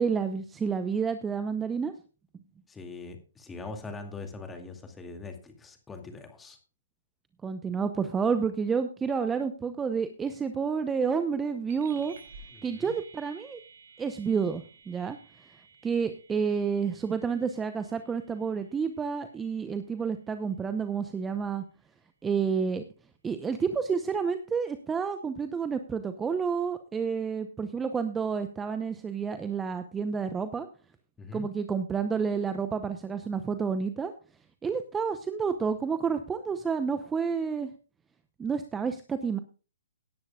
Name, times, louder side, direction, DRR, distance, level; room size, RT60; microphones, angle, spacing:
voice 1, 0.0-1.9 7.4-12.2 12.6-13.6 14.0-15.2 15.8-21.6 22.2-22.8 23.2-30.7 31.3-34.1 34.6-37.7 38.4-39.4, right 6 dB, 10° right, 10 dB, 0.8 m, -30 dB
voice 2, 2.7-6.6 12.5-12.9 31.2-31.5, left 3 dB, 10° left, 5 dB, 2.3 m, -42 dB
sound 1, 11.7-21.5, right 4 dB, 60° right, 4.7 m, -55 dB
17.5 x 10.5 x 2.4 m, 0.36 s
hypercardioid pair, 135°, 0 cm